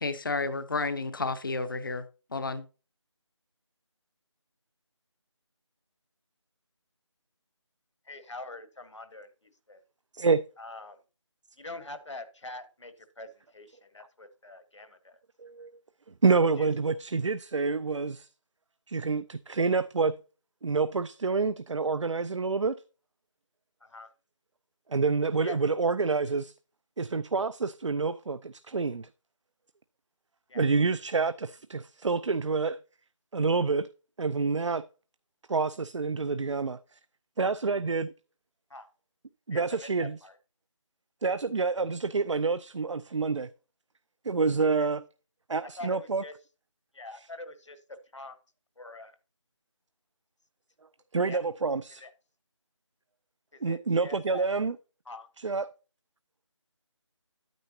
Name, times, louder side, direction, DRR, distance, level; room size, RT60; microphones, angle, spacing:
voice 1, 0.0-2.0 2.3-2.7, left 3 dB, 45° left, 0.6 m, -31 dB
voice 2, 8.0-9.8 10.6-11.0 11.6-15.2 16.6-16.7 23.8-24.1 25.4-25.6 30.5-30.7 38.7-38.9 39.5-40.4 44.8-44.9 45.6-46.3 46.9-48.4 48.8-49.2 51.2-51.5 52.0-52.1 53.5-54.5 55.0-55.3, left 2 dB, 70° left, 1.4 m, -44 dB
voice 3, 15.4-15.7 16.2-18.3 18.9-20.2 20.6-22.8 24.9-26.5 27.0-29.1 30.5-32.8 33.3-33.9 34.2-34.8 35.5-36.8 37.4-38.1 39.5-40.2 41.2-43.5 44.2-45.0 45.5-46.2 51.1-52.0 53.6-54.7 55.4-55.7, right 4 dB, 70° right, 0.4 m, -27 dB
10.0 x 9.1 x 2.7 m
figure-of-eight pair, 165°, 16 cm